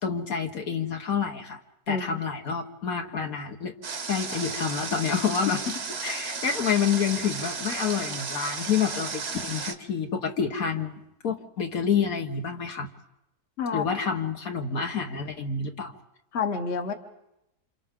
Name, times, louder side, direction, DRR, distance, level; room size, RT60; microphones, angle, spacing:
voice 1, 0.0-1.6 1.9-3.7 4.1-12.9 13.7-15.9, left 6 dB, 65° left, 3 dB, 1.8 m, -28 dB
voice 2, 1.9-2.2 13.6-13.9 16.3-16.9, left 5 dB, 45° left, 6 dB, 1.4 m, -28 dB
Water, 3.8-9.7, right 4 dB, 45° right, 1.3 m, -34 dB
29.0 x 27.0 x 3.7 m, 0.88 s
omnidirectional pair, 1.6 m